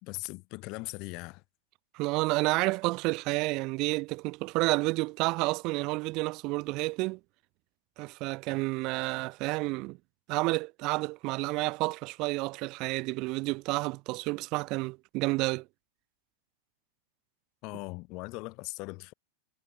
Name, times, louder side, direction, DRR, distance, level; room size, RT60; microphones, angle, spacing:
voice 1, 0.0-1.4 17.6-19.1, left 26 dB, 40° left, 2.5 m, -39 dB
voice 2, 1.9-7.2 8.0-10.0 10.3-15.6, right 23 dB, 40° right, 3.0 m, -30 dB
figure-of-eight pair, 90°, 0 cm